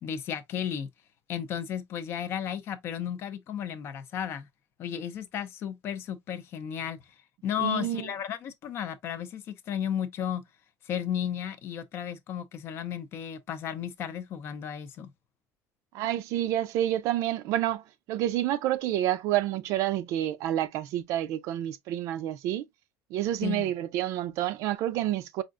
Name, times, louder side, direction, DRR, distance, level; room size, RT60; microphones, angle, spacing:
voice 1, 0.0-0.9 1.3-4.5 4.8-7.0 7.4-10.4 10.8-15.1 23.4-23.7, left 9 dB, 40° left, 0.5 m, -34 dB
voice 2, 7.6-8.1 15.9-17.8 18.1-22.7 23.1-25.4, right 13 dB, 60° right, 0.5 m, -29 dB
4.9 x 2.5 x 2.4 m
cardioid pair, 160°, 6 cm